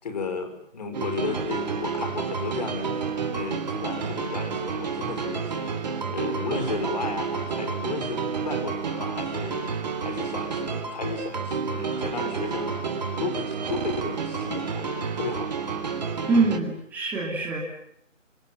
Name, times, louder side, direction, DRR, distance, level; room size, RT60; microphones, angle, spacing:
voice 1, 0.0-5.8 6.1-12.7 13.2-15.5, left 4 dB, 30° left, 7 dB, 5.5 m, -34 dB
sound 1, 0.9-16.6, right 5 dB, 35° right, 3.1 m, -30 dB
voice 2, 16.3-17.6, right 3 dB, 5° right, -3 dB, 2.7 m, -24 dB
28.5 x 26.5 x 7.5 m, 0.74 s
figure-of-eight pair, 160°, 39 cm